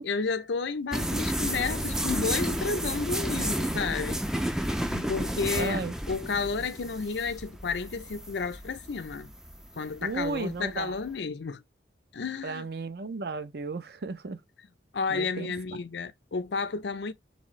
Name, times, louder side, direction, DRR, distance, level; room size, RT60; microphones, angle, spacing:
voice 1, 0.0-9.3 9.8-11.6 12.1-12.7 14.9-17.1, left 4 dB, 70° left, 0.5 m, -32 dB
sound 1, 0.9-11.1, equal, 5° right, 0.4 m, -32 dB
voice 2, 5.5-5.9 10.0-11.0 12.4-14.4 15.1-15.5, right 3 dB, 55° right, 0.5 m, -34 dB
4.1 x 3.5 x 3.1 m
head